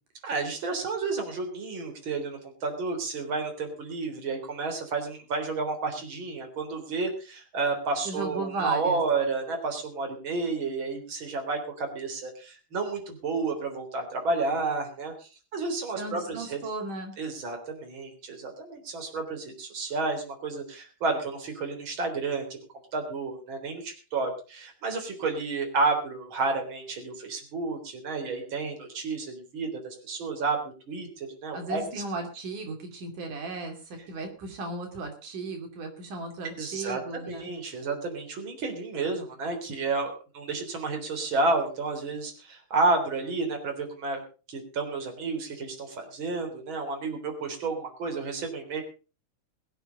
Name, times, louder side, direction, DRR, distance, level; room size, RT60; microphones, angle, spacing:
voice 1, 0.2-16.6 17.2-22.6 22.9-32.0 36.6-44.2 44.5-48.8, right 3 dB, 40° right, 3 dB, 4.3 m, -31 dB
voice 2, 8.1-9.0 16.0-17.1 31.5-37.5, right 3 dB, 80° right, 3 dB, 4.3 m, -35 dB
22.0 x 8.0 x 5.3 m, 0.36 s
omnidirectional pair, 3.6 m